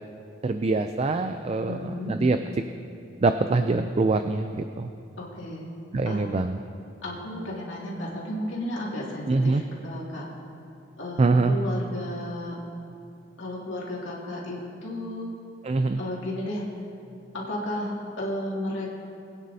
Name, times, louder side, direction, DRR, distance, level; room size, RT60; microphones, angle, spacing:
voice 1, 0.4-2.4 3.2-4.9 5.9-6.6 9.3-9.6 11.2-11.6 15.6-16.0, right 3 dB, 30° right, 8 dB, 0.3 m, -24 dB
voice 2, 1.7-2.2 5.2-5.7 6.1-6.2 7.0-10.2 11.0-12.6 13.4-15.3 16.0-16.6 17.3-18.9, left 1 dB, 70° left, -5 dB, 2.4 m, -33 dB
21.5 x 9.5 x 2.7 m, 2.6 s
head